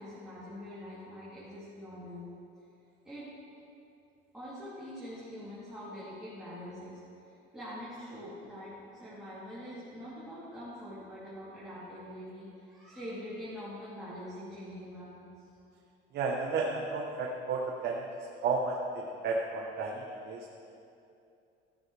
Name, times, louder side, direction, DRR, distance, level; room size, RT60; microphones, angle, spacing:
voice 1, 0.0-2.2 3.0-3.3 4.3-7.0 7.2-15.3, equal, 5° right, -12 dB, 3.2 m, -44 dB
voice 2, 16.1-18.0 18.4-20.5, right 4 dB, 50° right, -1 dB, 1.1 m, -32 dB
14.0 x 13.0 x 3.4 m, 2.6 s
cardioid pair, 140°, 21 cm